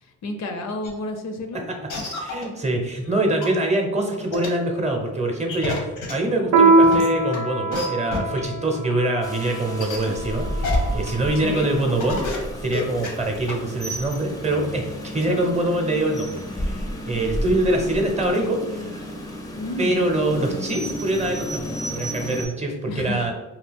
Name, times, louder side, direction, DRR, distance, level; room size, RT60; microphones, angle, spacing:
voice 1, 0.2-1.6 11.4-11.7 15.3-15.4 19.6-20.0 22.9-23.3, left 2 dB, 65° left, 5 dB, 0.5 m, -30 dB
sound 1, 0.8-0.9 1.4-1.5 1.9-2.4 3.1-3.2 3.4-3.5 4.3-4.5 5.5-6.1 6.8-7.4 7.7-7.8 8.1-8.4 8.8-8.9 9.8-10.1 10.6-10.8 11.1-11.2 11.7-11.8 12.0-12.4 12.7-13.1 13.5-13.6, left 4 dB, 85° left, 0.9 m, -29 dB
voice 2, 2.1-5.8 6.1-19.1 19.8-23.3, right 1 dB, 25° right, 2 dB, 0.7 m, -24 dB
Piano, 6.5-11.5, right 3 dB, 75° right, 0.5 m, -22 dB
Rain, 9.2-22.4, equal, 10° left, 0.5 m, -31 dB
2.8 x 2.4 x 3.4 m, 1.1 s
cardioid pair, 90°, 30 cm